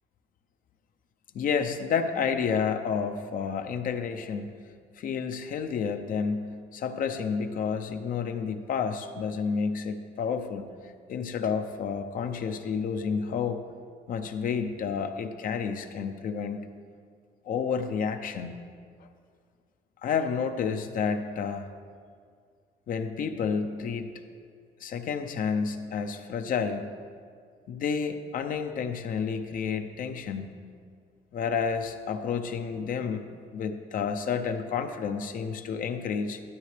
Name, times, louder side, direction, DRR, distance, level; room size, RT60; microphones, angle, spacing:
voice 1, 1.3-4.6 5.0-13.6 14.1-16.7 17.4-18.6 19.0-19.1 20.0-21.7 22.9-24.1 24.8-26.9 27.7-30.5 31.3-36.4, left 6 dB, 55° left, 7 dB, 0.7 m, -30 dB
12.5 x 9.3 x 3.3 m, 2.1 s
cardioid pair, 110°, 17 cm